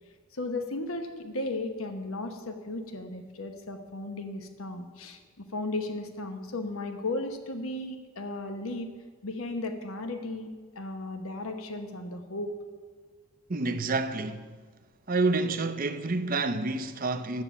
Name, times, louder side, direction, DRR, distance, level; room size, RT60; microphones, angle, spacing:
voice 1, 0.3-8.9 9.2-10.5 10.8-12.6, left 2 dB, 70° left, 1.0 m, -35 dB
voice 2, 13.5-14.5 15.1-17.4, right 3 dB, 40° right, 0.6 m, -28 dB
11.5 x 8.6 x 7.1 m
head